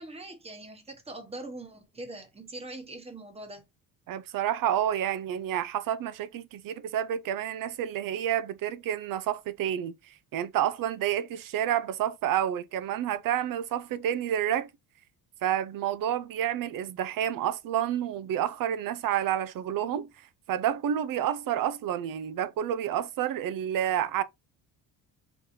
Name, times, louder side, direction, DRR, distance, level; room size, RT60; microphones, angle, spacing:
voice 1, 0.0-3.6, right 2 dB, 15° right, 1.2 m, -42 dB
voice 2, 4.1-14.7 15.4-20.1 20.5-24.2, right 10 dB, 60° right, 0.7 m, -29 dB
4.8 x 3.8 x 2.7 m
cardioid pair, 135°, 37 cm